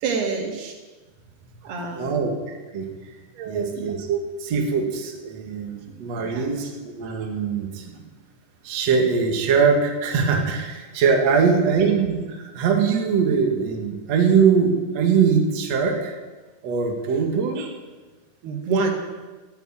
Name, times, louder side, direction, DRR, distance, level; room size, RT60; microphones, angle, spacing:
voice 1, 0.0-0.7 1.6-2.3 3.4-3.8 6.3-6.5 18.4-18.9, right 4 dB, 70° right, 3 dB, 3.7 m, -27 dB
voice 2, 2.0-2.3 2.7-2.8 3.5-7.8 8.6-16.1 16.6-17.7, right 6 dB, 50° right, 2 dB, 2.3 m, -22 dB
14.0 x 9.8 x 9.0 m, 1.3 s
omnidirectional pair, 5.0 m